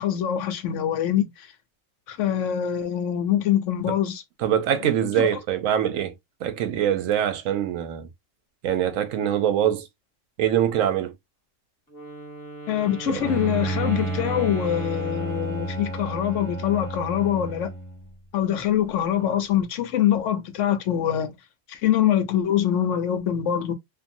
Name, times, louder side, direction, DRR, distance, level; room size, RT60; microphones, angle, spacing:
voice 1, 0.0-1.5 2.1-4.2 5.0-5.3 12.7-17.7 18.3-21.3 21.7-23.7, left 10 dB, 75° left, 0.9 m, -24 dB
voice 2, 4.4-6.1 6.4-8.1 8.6-9.9 10.4-11.1 13.1-13.3, right 10 dB, 90° right, 1.0 m, -23 dB
Wind instrument woodwind instrument, 11.9-16.0, right 2 dB, 15° left, 1.1 m, -38 dB
Bowed string instrument, 13.2-18.1, right 2 dB, 70° right, 1.3 m, -31 dB
2.7 x 2.5 x 2.6 m
omnidirectional pair, 1.3 m